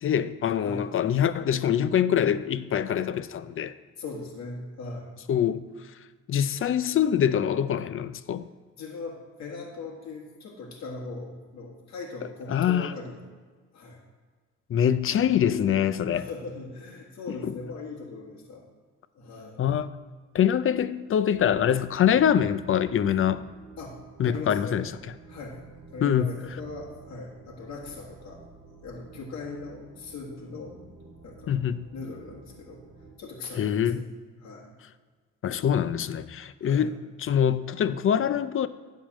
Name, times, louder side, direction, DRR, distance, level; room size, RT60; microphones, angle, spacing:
voice 1, 0.0-3.7 5.3-5.6 6.3-8.4 12.5-12.9 14.7-16.3 17.4-17.5 19.6-19.9 20.3-23.4 24.2-24.9 26.0-26.3 31.5-31.8 33.6-34.1 35.4-38.7, left 9 dB, 45° left, 0.5 m, -24 dB
voice 2, 4.0-5.1 8.8-13.3 13.7-14.0 16.1-18.6 19.2-19.6 23.8-24.0 24.2-24.8 25.3-25.6 25.9-28.4 28.8-30.8 31.2-31.5 31.9-32.8 33.2-34.1 34.4-34.7 36.6-36.9, left 3 dB, 60° left, 1.7 m, -39 dB
sound 1, 21.3-33.2, right 3 dB, 45° right, 1.6 m, -50 dB
10.0 x 3.7 x 7.3 m
cardioid pair, 90°, 30 cm